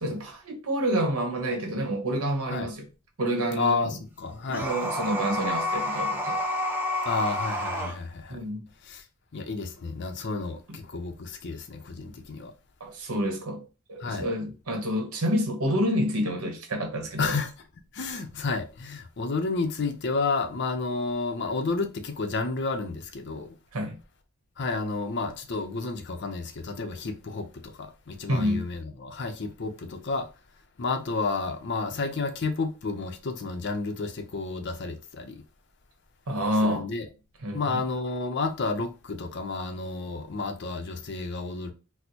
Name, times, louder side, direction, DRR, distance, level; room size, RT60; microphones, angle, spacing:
voice 1, 0.0-2.9 3.2-4.0 4.6-6.4 8.3-8.6 10.7-10.8 12.8-13.6 13.9-17.3 23.7-24.0 28.3-28.7 36.3-36.9 37.4-37.8, equal, 75° right, 1.0 m, -28 dB
voice 2, 3.6-4.7 7.1-8.4 8.8-9.0 9.3-12.5 14.0-14.3 17.2-17.5 17.9-23.6 24.6-30.3 30.8-35.4 36.6-37.1 37.5-41.7, left 3 dB, 55° left, 0.5 m, -31 dB
sound 1, 4.5-8.0, left 1 dB, 10° right, 0.6 m, -29 dB
4.2 x 2.0 x 2.8 m
head